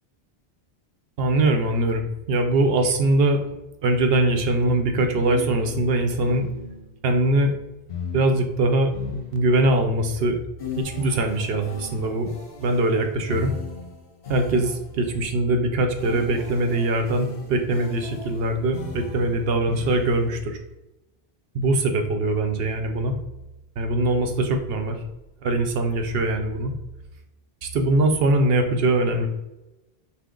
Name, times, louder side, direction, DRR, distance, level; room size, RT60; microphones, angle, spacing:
voice 1, 1.2-3.4 3.8-6.5 7.0-7.5 8.1-10.4 10.8-12.3 12.6-13.5 14.3-20.6 21.5-23.1 23.8-25.0 25.4-26.7 27.6-29.3, right 2 dB, 75° right, 5 dB, 0.9 m, -22 dB
sound 1, 5.2-7.0 7.9-9.8 10.6-15.1 16.0-20.5, left 6 dB, 65° left, 1.1 m, -38 dB
5.8 x 2.1 x 3.7 m, 0.98 s
omnidirectional pair, 1.0 m